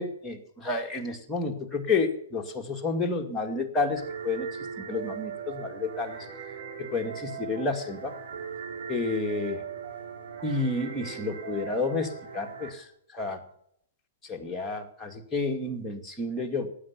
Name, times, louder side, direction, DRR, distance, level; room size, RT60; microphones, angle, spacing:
voice 1, 0.0-4.5 4.8-6.2 6.8-8.1 8.9-9.6 10.4-12.8 13.1-13.4 14.2-16.7, left 3 dB, 10° left, 1 dB, 2.2 m, -30 dB
sound 1, 4.0-12.7, right 7 dB, 60° right, 4.3 m, -39 dB
15.0 x 9.9 x 7.2 m, 0.71 s
hypercardioid pair, 115°, 0 cm